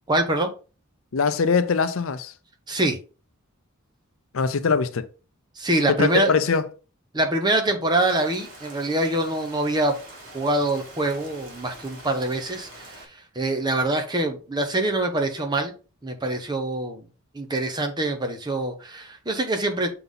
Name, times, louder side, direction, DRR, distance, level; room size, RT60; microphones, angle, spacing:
voice 1, 0.1-0.5 2.7-3.0 5.6-6.3 7.1-9.9 10.3-15.7 16.0-17.0 17.3-19.9, right 2 dB, 20° right, 1.0 m, -24 dB
voice 2, 1.1-2.3 4.3-5.1 5.9-6.6, left 5 dB, 65° left, 0.5 m, -22 dB
Rain, 8.0-13.1, right 1 dB, 65° right, 2.7 m, -44 dB
6.8 x 3.8 x 3.8 m
head